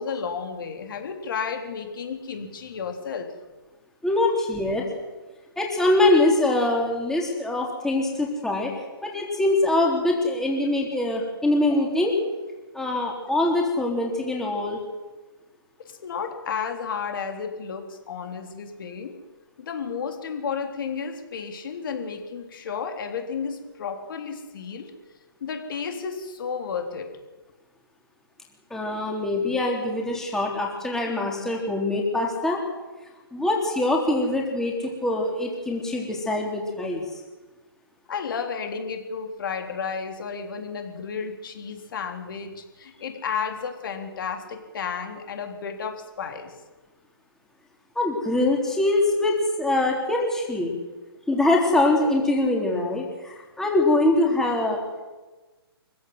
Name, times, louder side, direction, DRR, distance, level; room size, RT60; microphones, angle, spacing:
voice 1, 0.0-3.3 15.8-19.1 19.6-24.9 25.4-27.1 38.1-46.5, left 6 dB, 55° left, 4 dB, 3.6 m, -32 dB
voice 2, 4.0-4.8 5.6-8.7 9.0-12.2 12.7-14.8 28.7-32.6 33.3-37.0 48.0-50.7 51.3-55.0, left 2 dB, 5° left, -1 dB, 3.5 m, -23 dB
24.5 x 16.0 x 8.0 m, 1.2 s
hypercardioid pair, 145°, 13 cm